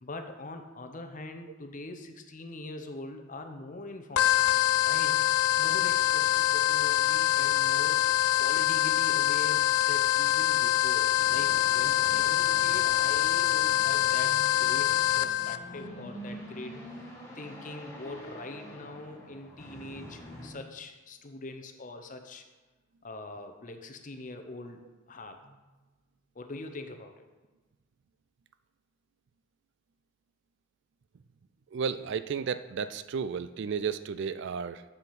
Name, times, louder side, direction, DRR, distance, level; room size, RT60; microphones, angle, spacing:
voice 1, 0.0-4.3 4.8-8.0 8.4-16.8 17.3-22.4 23.0-24.8 25.1-25.6 26.3-27.2, left 2 dB, 35° left, 6 dB, 0.7 m, -43 dB
sound 1, 4.2-15.6, left 14 dB, 90° left, 0.4 m, -25 dB
sound 2, 11.1-20.5, equal, 15° left, 1.7 m, -45 dB
voice 2, 31.7-34.8, right 6 dB, 55° right, 13 dB, 0.3 m, -33 dB
7.1 x 5.7 x 5.8 m, 1.2 s
head